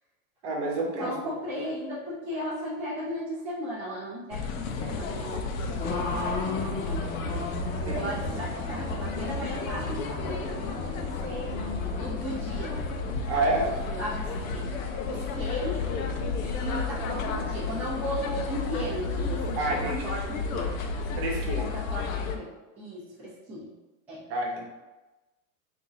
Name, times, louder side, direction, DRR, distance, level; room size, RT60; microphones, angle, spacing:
voice 1, 0.4-1.1 7.8-8.1 13.3-13.7 19.6-20.3 21.2-21.7 24.3-24.6, right 2 dB, 45° right, -1 dB, 0.9 m, -29 dB
voice 2, 1.0-7.1 7.8-12.8 13.3-13.4 13.9-15.9 16.4-20.8 21.6-23.7 24.1-24.3, equal, 5° right, -11 dB, 0.6 m, -36 dB
sound 1, 4.3-22.4, left 4 dB, 75° left, 0.7 m, -32 dB
Race car auto racing, 5.8-19.9, left 3 dB, 45° left, 1.2 m, -38 dB
3.7 x 2.7 x 4.0 m, 1.1 s
supercardioid pair, 175°, 41 cm